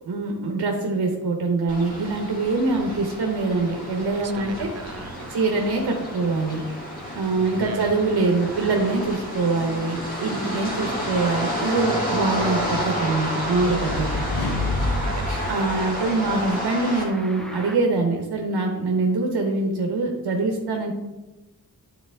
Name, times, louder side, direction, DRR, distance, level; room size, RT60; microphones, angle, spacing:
voice 1, 0.0-4.7 5.3-6.6 7.1-14.1 15.5-20.9, right 3 dB, 90° right, 2 dB, 0.9 m, -24 dB
sound 1, 1.7-17.1, equal, 20° left, 2.0 m, -31 dB
sound 2, 1.9-17.8, equal, ahead, 0.7 m, -42 dB
voice 2, 2.7-3.1 4.2-5.3 7.6-7.9 10.9-11.3 15.0-15.8, right 6 dB, 40° right, 11 dB, 0.4 m, -38 dB
sound 3, 13.0-16.4, left 2 dB, 65° left, 1.1 m, -29 dB
9.1 x 4.1 x 3.4 m, 1.1 s
wide cardioid pair, 90°, 39 cm